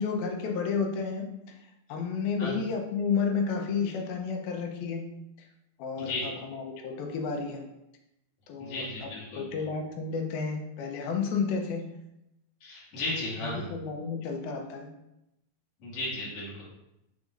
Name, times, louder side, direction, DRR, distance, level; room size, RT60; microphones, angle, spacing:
voice 1, 0.0-1.6 1.9-5.1 5.4-5.5 5.8-7.7 8.5-11.8 13.4-14.9, left 5 dB, 85° left, 2 dB, 2.7 m, -31 dB
voice 2, 8.6-9.4 12.6-13.7 15.8-16.6, left 2 dB, 50° left, -7 dB, 3.1 m, -34 dB
6.7 x 6.3 x 2.6 m, 0.87 s
omnidirectional pair, 4.3 m